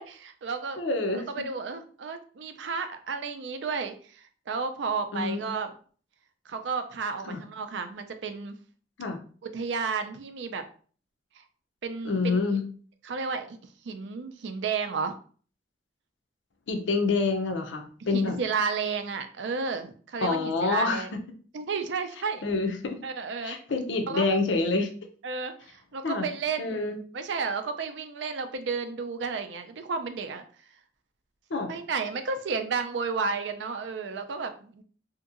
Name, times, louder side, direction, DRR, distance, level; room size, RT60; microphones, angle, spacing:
voice 1, 0.0-0.8 1.3-5.7 6.5-8.5 9.4-10.6 11.4-11.5 11.8-12.4 13.0-13.6 13.8-15.2 18.1-21.1 21.5-22.4 23.0-23.6 24.1-24.3 25.2-30.4 31.7-34.8, right 5 dB, 75° right, 8 dB, 0.4 m, -32 dB
voice 2, 0.8-1.3 5.1-5.5 7.3-7.4 9.0-9.2 12.0-12.6 16.7-18.4 20.2-21.1 22.4-23.0 23.4-24.9 26.0-26.2 26.6-27.0 31.5-31.7, left 3 dB, 85° left, 6 dB, 0.6 m, -27 dB
2.8 x 2.6 x 2.5 m, 0.43 s
head